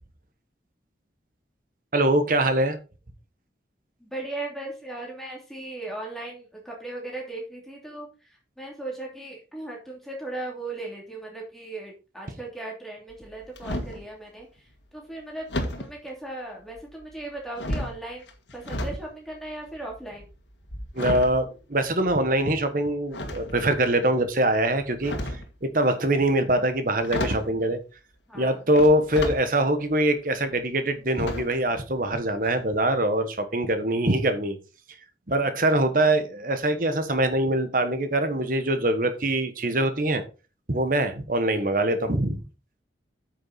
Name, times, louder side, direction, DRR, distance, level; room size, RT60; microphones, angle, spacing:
voice 1, 1.9-2.8 20.9-27.8 28.3-34.6 35.3-40.2 40.7-42.4, right 1 dB, 50° right, 9 dB, 1.3 m, -23 dB
voice 2, 4.0-15.5 15.8-18.3 18.5-20.3 28.3-28.6 41.4-41.7, right 2 dB, ahead, -2 dB, 2.8 m, -37 dB
sound 1, 13.1-14.1 15.5-15.9 16.7-17.2 17.5-19.0 19.3-22.3 23.1-23.8 24.8-25.5 26.7-26.8 27.0-27.5 28.7-29.4 29.9-30.0 31.2-31.7 32.0-32.1 32.4-32.5, left 1 dB, 80° left, 1.8 m, -32 dB
9.0 x 6.3 x 4.1 m, 0.33 s
head